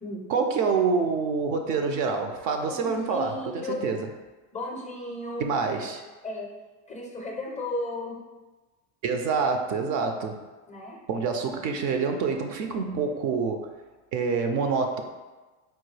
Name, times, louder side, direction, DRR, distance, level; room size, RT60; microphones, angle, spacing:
voice 1, 0.3-4.1 5.4-6.0 9.0-10.4 11.1-13.7 14.1-15.0, right 5 dB, 50° right, 5 dB, 0.4 m, -27 dB
voice 2, 2.6-3.9 4.5-5.4 5.7-5.9 6.2-6.5 6.9-8.2 10.7-11.0, left 1 dB, 20° left, 0 dB, 0.4 m, -34 dB
4.5 x 2.2 x 3.2 m, 1.2 s
supercardioid pair, 105°, 41 cm